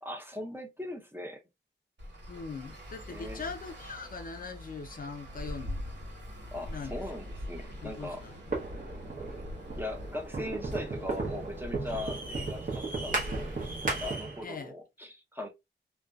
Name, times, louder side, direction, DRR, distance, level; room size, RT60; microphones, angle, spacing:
voice 1, 0.0-1.4 3.1-3.4 6.5-8.2 9.8-13.5 13.8-15.5, left 1 dB, 10° right, 0.5 m, -40 dB
Traffic noise roadway noise, 2.0-14.1, left 1 dB, 65° right, 1.3 m, -43 dB
voice 2, 2.3-6.0 6.6-7.2 7.6-8.4 14.4-14.7, left 4 dB, 50° left, 0.4 m, -42 dB
sound 1, 8.5-14.4, right 3 dB, 45° right, 0.8 m, -35 dB
2.5 x 2.2 x 2.2 m
wide cardioid pair, 115°, 19 cm